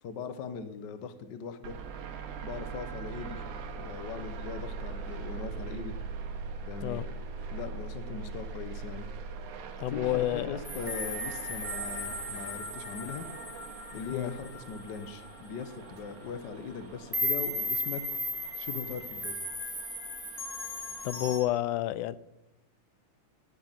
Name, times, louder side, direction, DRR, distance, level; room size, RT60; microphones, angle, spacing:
voice 1, 0.0-1.8 2.4-3.4 3.7-6.0 6.7-7.1 7.5-9.1 9.9-13.3 13.9-18.0 18.6-19.4, left 6 dB, 75° left, 1.0 m, -40 dB
sound 1, 1.6-21.3, right 5 dB, 85° right, 2.6 m, -42 dB
voice 2, 9.8-10.6 14.1-14.3 21.0-22.2, left 13 dB, 90° left, 2.1 m, -29 dB
sound 2, 10.6-15.7 16.2-16.4 17.1-21.4, left 1 dB, 5° right, 2.2 m, -36 dB
18.0 x 7.2 x 5.7 m
omnidirectional pair, 3.5 m